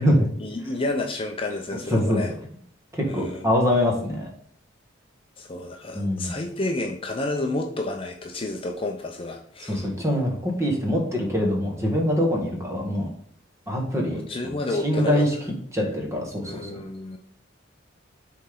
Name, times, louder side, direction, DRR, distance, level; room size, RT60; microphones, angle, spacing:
voice 1, 0.0-2.3 3.0-3.5 5.4-9.9 14.3-15.2 15.8-15.9 16.4-17.2, left 2 dB, 30° left, 3 dB, 0.7 m, -30 dB
voice 2, 1.9-2.2 2.9-4.3 5.9-6.4 9.6-13.1 13.7-14.2 14.7-15.3 15.7-16.8, equal, 15° right, 0 dB, 1.8 m, -24 dB
7.1 x 4.3 x 3.8 m, 0.64 s
head